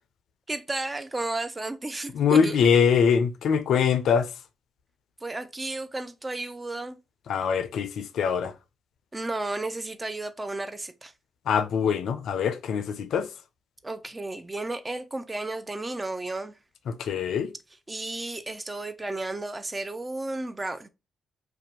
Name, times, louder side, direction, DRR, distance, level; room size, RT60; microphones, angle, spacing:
voice 1, 0.5-2.6 5.2-7.0 9.1-11.1 13.8-16.5 17.9-20.9, right 2 dB, 25° right, 0.4 m, -33 dB
voice 2, 2.1-4.3 7.3-8.5 11.5-13.3 16.9-17.5, left 7 dB, 70° left, 0.4 m, -23 dB
2.5 x 2.2 x 2.8 m
hypercardioid pair, 50°, 0 cm